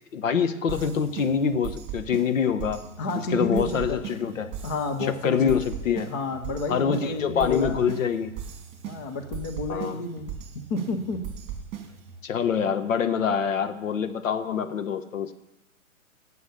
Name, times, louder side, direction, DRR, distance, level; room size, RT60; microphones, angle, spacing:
voice 1, 0.1-2.8 3.3-4.5 5.0-6.1 6.7-8.3 9.7-10.0 12.2-15.3, left 7 dB, 65° left, 10 dB, 1.2 m, -25 dB
sound 1, 0.7-12.2, right 8 dB, 25° right, 2.4 m, -38 dB
voice 2, 3.0-4.0 4.6-5.5 6.1-7.8 8.8-10.4 10.7-11.2, left 2 dB, 15° left, 6 dB, 0.4 m, -30 dB
11.5 x 7.0 x 6.8 m, 0.94 s
figure-of-eight pair, 120°, 41 cm